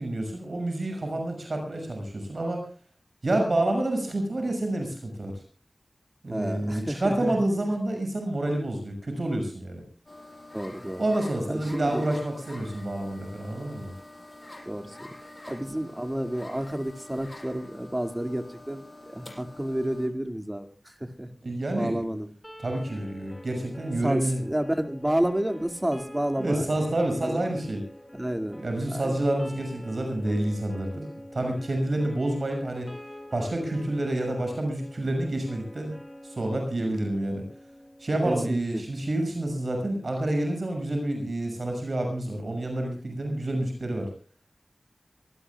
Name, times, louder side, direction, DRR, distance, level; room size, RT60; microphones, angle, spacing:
voice 1, 0.0-2.7 3.2-5.3 6.2-9.8 11.0-13.9 21.4-22.1 22.6-24.4 26.4-27.8 28.6-32.9 33.3-35.9 36.2-37.4 38.0-44.1, right 1 dB, 65° right, 4 dB, 6.4 m, -28 dB
voice 2, 6.3-7.3 10.5-11.0 11.4-12.1 14.7-15.0 15.5-21.3 21.8-22.3 24.0-26.7 27.2-27.4 28.1-29.2 38.2-38.8, right 1 dB, 15° right, 6 dB, 2.2 m, -30 dB
sound 1, 10.1-20.1, left 1 dB, 30° left, 6.4 m, -46 dB
sound 2, 22.4-38.5, equal, 5° left, 5.6 m, -46 dB
24.5 x 18.5 x 2.3 m, 0.39 s
wide cardioid pair, 70°, 0 cm